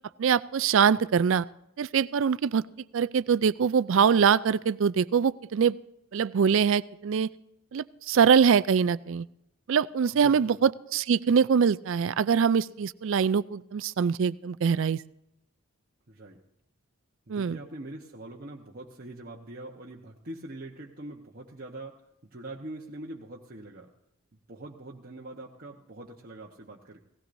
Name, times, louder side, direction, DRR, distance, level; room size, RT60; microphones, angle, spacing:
voice 1, 0.2-1.4 1.8-2.6 2.9-5.8 6.1-7.3 7.7-9.3 9.7-15.0 17.3-17.6, right 6 dB, 60° right, 16 dB, 0.3 m, -23 dB
voice 2, 10.1-10.6 16.1-16.4 17.3-22.0 22.3-23.9 24.5-27.0, right 2 dB, 45° right, -3 dB, 1.1 m, -43 dB
18.0 x 16.0 x 2.6 m, 0.83 s
head